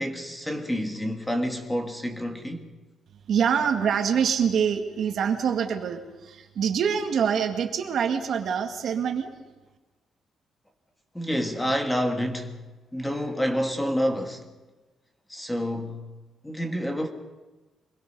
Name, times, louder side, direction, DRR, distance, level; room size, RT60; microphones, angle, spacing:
voice 1, 0.0-2.7 11.1-12.6 12.9-14.4 15.3-16.0 16.4-17.1, equal, 5° left, 1.6 m, -28 dB
voice 2, 3.3-9.3, right 7 dB, 60° right, 2.0 m, -25 dB
24.5 x 22.0 x 5.5 m
cardioid pair, 160°, 0 cm